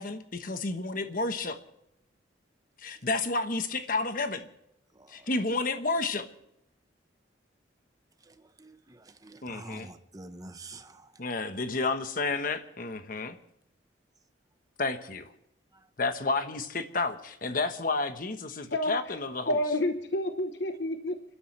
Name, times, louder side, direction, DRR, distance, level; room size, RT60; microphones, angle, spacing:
voice 1, 0.0-1.6 2.8-4.5 5.1-6.3 9.4-9.9 11.2-13.4 14.8-15.3 16.0-19.5, left 3 dB, 50° left, 1.2 m, -31 dB
voice 2, 4.9-5.3 8.2-11.2 15.7-15.9, right 2 dB, 20° right, 0.9 m, -48 dB
voice 3, 18.6-19.2 19.5-21.2, left 1 dB, 70° left, 1.0 m, -30 dB
29.5 x 12.5 x 3.3 m
head